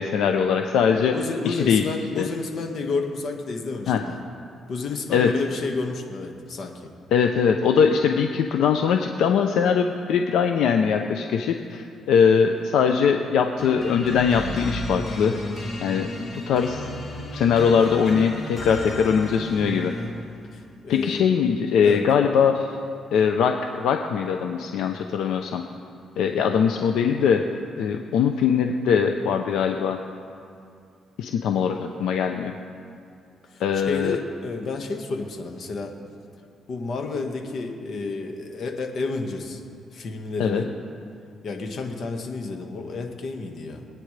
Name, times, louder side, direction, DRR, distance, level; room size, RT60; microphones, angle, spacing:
voice 1, 0.0-1.2 1.5-1.8 2.2-2.3 3.9-4.0 5.1-5.3 7.1-15.3 15.8-16.9 17.3-19.9 20.9-22.7 23.1-25.6 26.2-27.4 27.8-30.0 31.2-32.5 33.6-34.2 40.4-40.6, left 7 dB, 80° left, 5 dB, 0.6 m, -21 dB
voice 2, 1.0-4.2 4.7-6.9 20.5-21.3 21.8-22.0 33.5-35.9 36.7-39.6 39.9-40.7 41.4-43.8, left 3 dB, 55° left, 3 dB, 1.6 m, -31 dB
sound 1, 13.6-20.3, left 1 dB, 40° left, 2.7 m, -33 dB
24.5 x 9.2 x 3.3 m, 2.4 s
cardioid pair, 90°, 0 cm